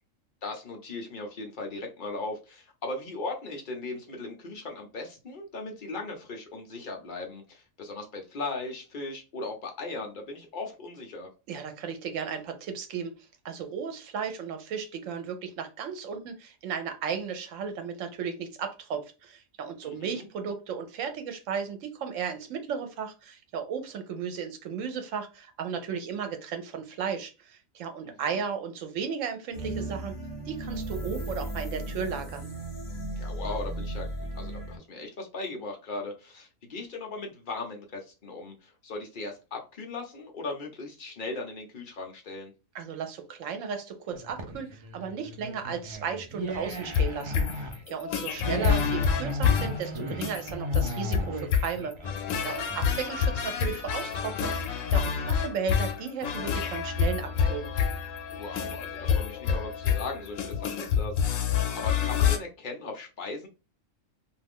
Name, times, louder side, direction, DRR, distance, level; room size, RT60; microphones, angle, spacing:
voice 1, 0.4-11.3 19.8-20.3 28.0-28.4 33.2-34.1 34.4-42.5 58.4-61.4 61.7-63.5, left 3 dB, 50° left, 2 dB, 0.7 m, -38 dB
voice 2, 11.5-13.1 13.4-30.1 30.5-32.5 42.7-57.7, right 6 dB, 75° right, 7 dB, 1.0 m, -35 dB
sound 1, 29.5-34.8, right 1 dB, 25° left, 1.0 m, -35 dB
sound 2, 44.1-53.2, right 1 dB, 50° right, 0.3 m, -36 dB
sound 3, 46.7-62.4, left 7 dB, 80° left, 0.9 m, -27 dB
2.4 x 2.4 x 3.5 m, 0.30 s
omnidirectional pair, 1.3 m